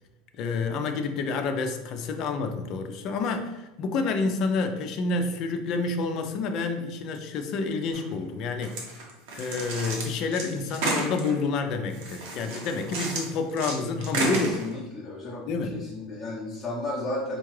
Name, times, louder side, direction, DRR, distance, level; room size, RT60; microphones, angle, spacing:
voice 1, 0.4-8.8 9.3-14.5 15.5-15.8, left 4 dB, 40° left, 6 dB, 0.4 m, -28 dB
sound 1, 7.9-8.1 8.6-11.4 11.9-13.7 14.0-14.8, right 2 dB, 65° right, 0.9 m, -32 dB
voice 2, 14.3-15.5 15.7-17.4, left 2 dB, 10° left, -9 dB, 0.8 m, -33 dB
4.4 x 2.3 x 3.1 m, 1.0 s
supercardioid pair, 155°, 0 cm